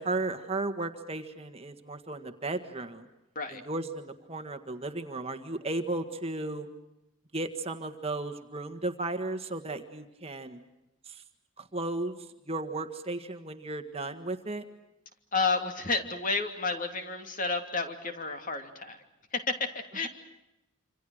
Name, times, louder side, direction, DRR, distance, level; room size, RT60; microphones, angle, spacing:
voice 1, 0.0-3.1 3.5-6.7 7.3-10.6 11.0-11.2 11.6-12.2 12.4-14.6, right 2 dB, 30° right, 7 dB, 1.7 m, -35 dB
voice 2, 15.3-19.0 19.3-20.1, left 4 dB, 40° left, 6 dB, 2.9 m, -31 dB
27.0 x 27.0 x 6.5 m, 0.92 s
head